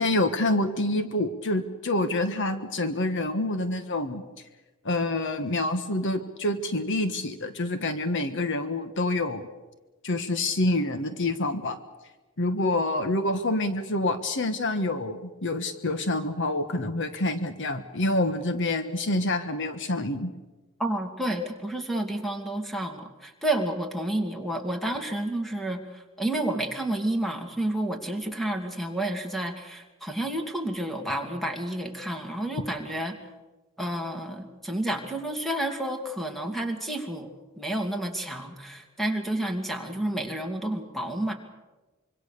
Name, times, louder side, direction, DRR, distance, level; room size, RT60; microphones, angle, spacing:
voice 1, 0.0-4.2 4.8-9.5 10.0-11.8 12.4-20.3, left 2 dB, 60° left, 9 dB, 1.4 m, -27 dB
voice 2, 20.8-33.1 33.8-37.3 37.6-41.3, right 1 dB, ahead, 4 dB, 2.5 m, -30 dB
25.5 x 24.0 x 6.8 m, 1.2 s
head